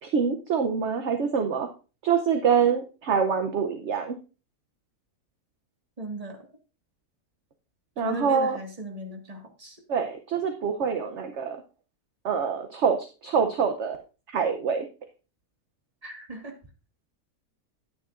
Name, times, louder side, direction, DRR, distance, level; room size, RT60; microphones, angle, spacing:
voice 1, 0.0-1.7 2.0-4.2 8.0-8.6 9.9-11.6 12.2-14.0 14.3-14.9, right 6 dB, 55° right, 6 dB, 1.0 m, -25 dB
voice 2, 6.0-6.5 8.0-9.8 16.0-16.6, right 2 dB, 25° right, 2 dB, 1.8 m, -37 dB
11.0 x 9.3 x 2.5 m, 0.34 s
omnidirectional pair, 1.6 m